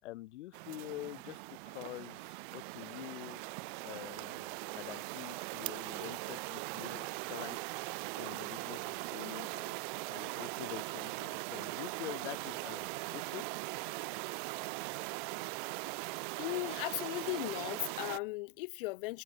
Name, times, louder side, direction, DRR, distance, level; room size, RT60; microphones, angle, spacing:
voice 1, 0.0-3.4 3.8-7.6 8.1-9.8 10.1-13.4, left 17 dB, 60° left, 4.0 m, -46 dB
sound 1, 0.5-18.2, right 28 dB, 40° right, 1.3 m, -40 dB
voice 2, 16.4-19.2, left 22 dB, 45° left, 0.8 m, -37 dB
supercardioid pair, 180°, 38 cm